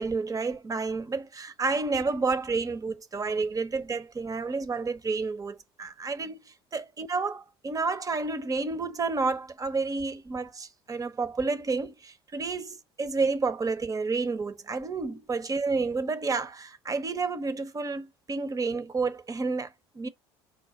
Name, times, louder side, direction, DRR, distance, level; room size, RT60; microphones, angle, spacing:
voice 1, 0.0-20.1, right 4 dB, 25° right, 0.9 m, -30 dB
5.8 x 2.2 x 4.2 m
hypercardioid pair, 65°, 13 cm